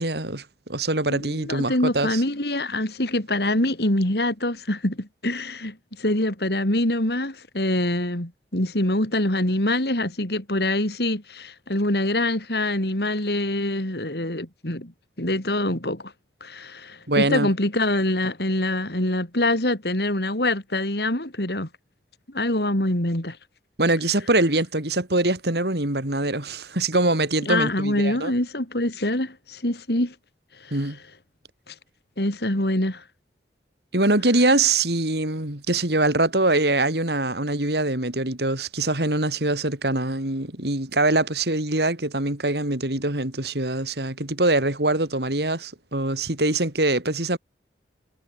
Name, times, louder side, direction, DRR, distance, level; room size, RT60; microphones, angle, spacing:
voice 1, 0.0-2.2 17.1-17.5 23.8-28.3 30.7-31.0 33.9-47.4, right 2 dB, 70° right, 4.0 m, -23 dB
voice 2, 1.1-14.9 15.2-16.1 16.4-21.7 22.3-23.4 27.5-30.1 30.6-30.8 31.7-31.8 32.2-33.0, left 1 dB, 70° left, 4.0 m, -25 dB
head